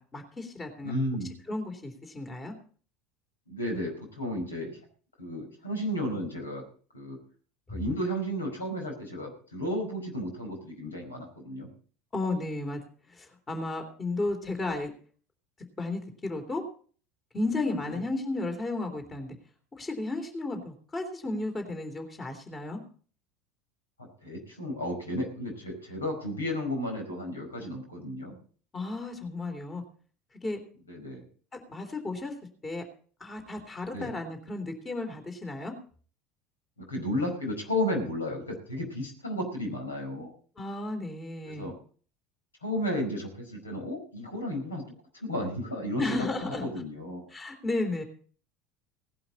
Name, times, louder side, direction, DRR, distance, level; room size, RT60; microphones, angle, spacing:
voice 1, 0.0-0.9 1.5-2.5 12.1-12.8 13.1-14.9 15.8-16.6 17.3-19.3 19.7-22.8 28.7-29.8 30.4-30.6 31.5-32.3 32.6-32.8 33.2-35.7 40.6-41.7 46.0-46.7 47.3-48.0, left 2 dB, 25° left, 5 dB, 3.4 m, -33 dB
voice 2, 0.8-1.3 3.5-4.8 5.2-6.6 6.9-7.2 7.7-11.7 17.8-18.0 24.0-28.4 30.9-31.2 33.9-34.1 36.8-40.3 41.4-41.8 42.6-44.8 45.1-47.3, equal, 80° left, 3 dB, 4.9 m, -33 dB
18.0 x 11.5 x 4.2 m, 0.43 s
figure-of-eight pair, 70°, 0 cm